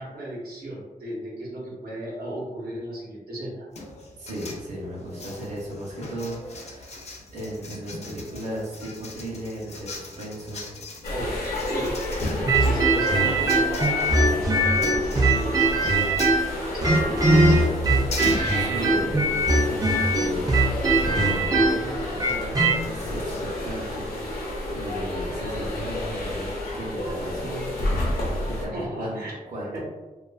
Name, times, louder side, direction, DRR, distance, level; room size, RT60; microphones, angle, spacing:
voice 1, 0.0-3.7 11.1-11.9 12.6-16.4 16.7-17.5 28.7-29.3 29.7-29.8, right 1 dB, 85° right, -5 dB, 0.8 m, -35 dB
sound 1, 3.7-23.4, left 2 dB, 45° left, 0.4 m, -40 dB
voice 2, 4.2-7.0 7.3-10.7 18.6-20.4 20.9-24.4 24.7-28.0 28.6-29.8, right 1 dB, 55° right, -6 dB, 0.7 m, -35 dB
sound 2, 11.0-28.6, left 1 dB, 85° left, 0.8 m, -31 dB
sound 3, 12.5-16.5 16.8-22.8, right 2 dB, 25° right, 0.3 m, -21 dB
2.6 x 2.3 x 2.2 m, 1.2 s
wide cardioid pair, 155°, 15 cm